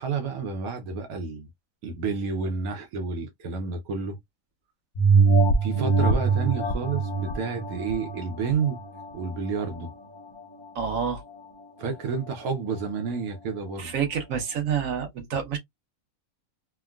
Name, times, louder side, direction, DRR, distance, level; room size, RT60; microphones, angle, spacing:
voice 1, 0.0-1.5 1.8-4.2 5.6-8.8 9.1-9.9 11.8-13.9, right 5 dB, 90° right, 1.2 m, -30 dB
sound 1, 4.9-9.9 10.4-10.5, right 4 dB, 45° left, 0.6 m, -23 dB
voice 2, 10.7-11.2 13.8-15.6, right 7 dB, 70° right, 1.4 m, -28 dB
3.4 x 2.2 x 2.3 m
omnidirectional pair, 1.5 m